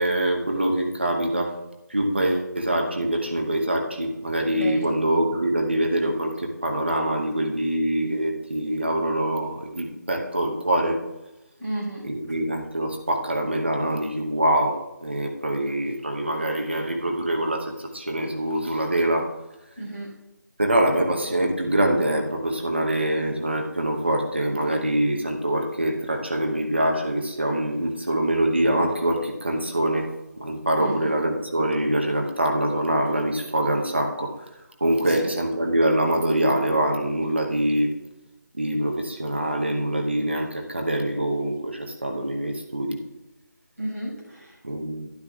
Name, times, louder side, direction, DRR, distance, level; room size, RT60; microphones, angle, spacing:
voice 1, 0.0-1.5 1.9-11.0 12.0-19.3 20.6-30.1 30.4-34.3 34.8-37.9 38.6-43.0 44.6-45.1, right 1 dB, 35° right, 2 dB, 0.9 m, -24 dB
voice 2, 4.5-4.9 11.6-12.0 19.8-20.1 30.8-31.1 35.1-35.3 43.8-44.5, right 1 dB, 5° right, -16 dB, 3.2 m, -32 dB
12.0 x 11.5 x 2.4 m, 0.95 s
figure-of-eight pair, 180°, 10 cm